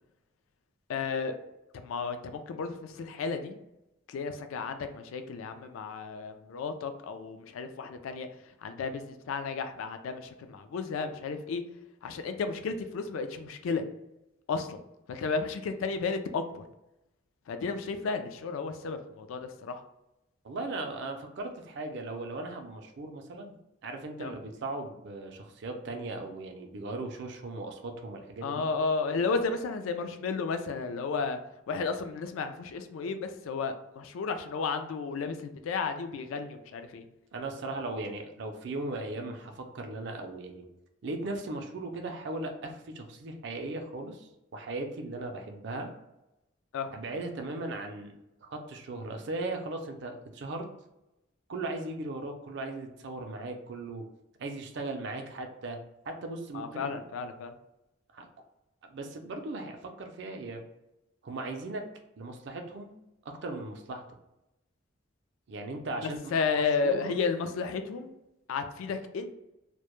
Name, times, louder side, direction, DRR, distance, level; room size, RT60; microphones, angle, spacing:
voice 1, 0.9-1.3 1.7-3.6 4.1-8.3 8.6-11.6 12.0-13.8 14.5-14.8 15.1-16.6 17.5-19.8 24.2-24.3 28.4-31.4 31.7-37.0 46.7-46.9 56.5-57.5 66.0-68.1 68.5-69.3, left 4 dB, 80° left, 8 dB, 0.3 m, -33 dB
voice 2, 20.4-23.6 23.8-28.6 37.3-40.7 41.0-45.9 46.9-50.7 51.5-54.1 54.4-55.8 56.1-57.0 58.1-58.3 58.8-60.6 61.2-61.8 62.2-62.9 63.3-64.0 65.5-66.3 66.8-67.2, right 2 dB, 55° right, 4 dB, 0.4 m, -38 dB
2.2 x 2.0 x 2.9 m, 0.91 s
head